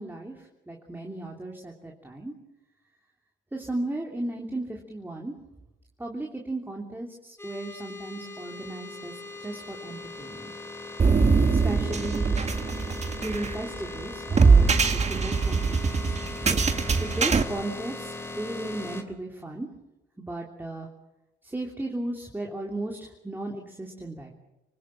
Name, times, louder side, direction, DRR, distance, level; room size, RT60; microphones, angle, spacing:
voice 1, 0.0-2.3 3.5-5.3 6.0-10.5 11.5-12.4 13.2-16.2 17.0-19.7 20.2-20.9 21.4-24.4, right 1 dB, 10° right, 0 dB, 3.2 m, -35 dB
sound 1, 7.4-19.0, left 2 dB, 10° left, 2.8 m, -39 dB
sound 2, 11.0-17.4, right 4 dB, 35° right, 1.9 m, -22 dB
26.5 x 19.0 x 7.3 m, 0.95 s
cardioid pair, 90°, 20 cm